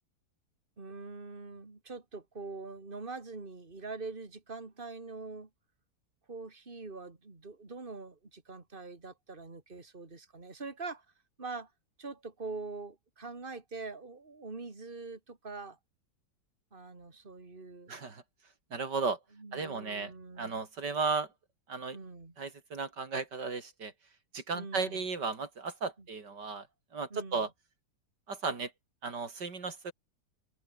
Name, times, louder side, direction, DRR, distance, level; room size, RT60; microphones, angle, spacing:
voice 1, 0.8-5.5 6.3-11.0 11.4-11.7 12.0-15.8 16.7-18.0 19.4-20.6 21.9-22.3 24.5-25.0 27.1-27.5, right 3 dB, 30° right, 3.2 m, -44 dB
voice 2, 17.9-18.2 18.7-19.2 19.5-21.3 21.7-22.0 22.4-23.9 24.3-26.7 26.9-27.5 28.3-28.7 29.0-29.9, right 4 dB, 85° right, 3.8 m, -35 dB
omnidirectional pair, 1.8 m